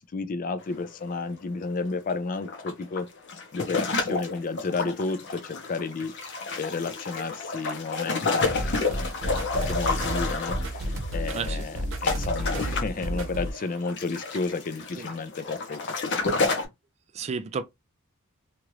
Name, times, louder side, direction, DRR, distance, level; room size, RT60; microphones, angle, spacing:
voice 1, 0.0-3.1 3.5-6.1 6.6-9.1 9.5-16.5, left 3 dB, 40° left, 0.4 m, -32 dB
sound 1, 0.6-0.8 1.1-1.2 2.1-16.6, left 4 dB, 55° left, 0.8 m, -30 dB
sound 2, 8.4-13.5, right 1 dB, 65° right, 0.8 m, -31 dB
voice 2, 11.3-11.7 14.9-15.1 17.1-17.6, right 5 dB, 30° right, 0.3 m, -33 dB
2.9 x 2.4 x 3.0 m
head